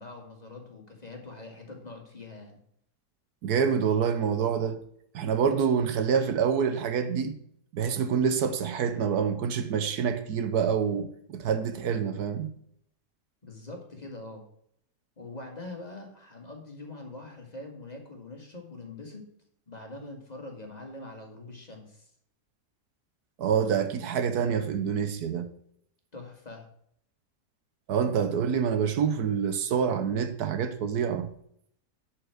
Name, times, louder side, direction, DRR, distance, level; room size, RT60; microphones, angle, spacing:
voice 1, 0.0-2.6 13.4-14.4 15.2-19.3 19.7-22.1 26.1-26.7, left 2 dB, 25° left, 1.8 m, -43 dB
voice 2, 3.4-4.8 5.1-7.4 7.7-12.5 23.4-25.5 27.9-31.3, right 7 dB, 75° right, 1.3 m, -27 dB
11.0 x 4.6 x 6.1 m
omnidirectional pair, 1.7 m